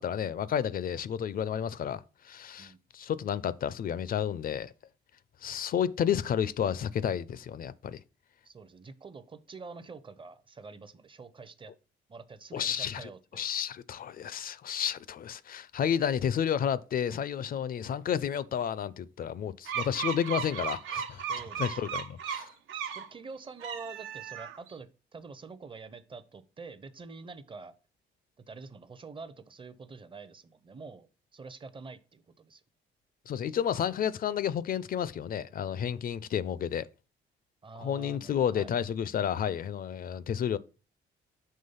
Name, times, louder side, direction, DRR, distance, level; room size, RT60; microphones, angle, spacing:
voice 1, 0.0-4.7 5.4-8.0 12.5-13.1 13.4-21.3 21.6-22.5 33.3-36.9 37.8-40.6, left 8 dB, 45° left, 0.4 m, -31 dB
voice 2, 8.4-11.7 12.1-13.5 21.3-21.9 22.7-27.7 28.5-32.6 37.6-38.7, right 4 dB, 25° right, 0.6 m, -46 dB
sound 1, 19.7-23.1 23.5-24.7, right 7 dB, 80° right, 0.6 m, -35 dB
5.6 x 3.1 x 5.6 m
cardioid pair, 90°, 20 cm